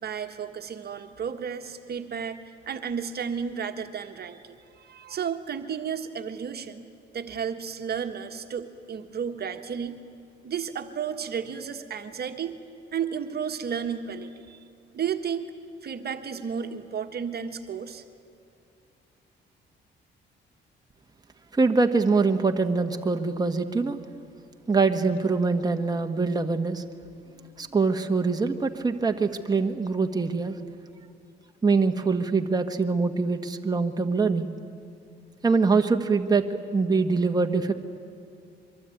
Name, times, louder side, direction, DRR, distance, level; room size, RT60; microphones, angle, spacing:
voice 1, 0.0-2.4 2.7-6.8 7.1-10.0 10.4-12.5 12.9-14.6 14.9-15.5 15.8-18.0, right 7 dB, 55° right, 6 dB, 1.5 m, -33 dB
voice 2, 21.5-24.0 24.7-26.8 27.6-30.6 31.6-34.5 35.4-36.4 36.7-37.7, right 4 dB, 20° right, 5 dB, 1.5 m, -24 dB
23.5 x 23.5 x 9.3 m, 2.5 s
cardioid pair, 90°, 20 cm